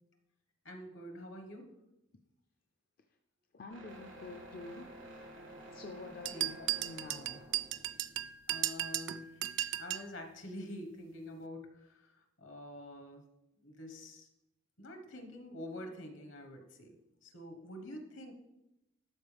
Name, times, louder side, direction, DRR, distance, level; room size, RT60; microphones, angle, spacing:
voice 1, 0.6-1.7 6.3-6.6 8.5-9.4 9.8-13.2 13.6-14.3 14.8-18.3, left 1 dB, 70° left, 5 dB, 1.3 m, -47 dB
voice 2, 3.5-4.9 5.4-6.5 6.8-7.5, left 3 dB, 45° left, 4 dB, 0.4 m, -48 dB
sound 1, 3.7-9.1, right 1 dB, 85° right, 1.9 m, -52 dB
sound 2, 6.3-10.1, right 14 dB, 65° right, 0.3 m, -36 dB
12.5 x 4.5 x 3.4 m, 0.90 s
head